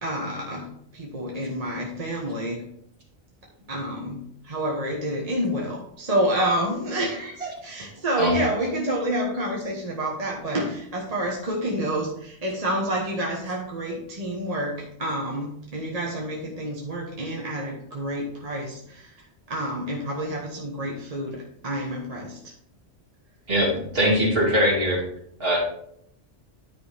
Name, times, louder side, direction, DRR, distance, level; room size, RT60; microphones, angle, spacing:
voice 1, 0.0-2.6 3.7-22.5, right 1 dB, 35° right, -2 dB, 1.2 m, -28 dB
voice 2, 23.5-25.0 25.4-25.6, equal, 55° right, -3 dB, 2.6 m, -21 dB
10.0 x 5.3 x 3.3 m, 0.69 s
omnidirectional pair, 1.2 m